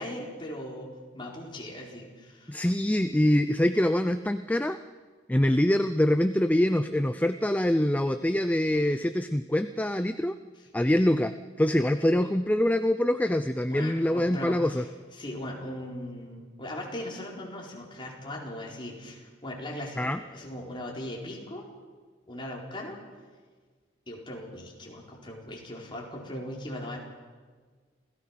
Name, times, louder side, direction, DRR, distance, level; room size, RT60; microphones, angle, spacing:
voice 1, 0.0-2.6 10.6-10.7 13.7-14.8 15.1-21.7 22.3-23.0 24.1-27.0, left 1 dB, 25° left, -2 dB, 4.3 m, -39 dB
voice 2, 2.5-4.8 5.3-10.4 10.7-14.8 20.0-20.2, left 1 dB, 10° left, 10 dB, 0.5 m, -24 dB
28.0 x 16.5 x 5.9 m, 1.5 s
head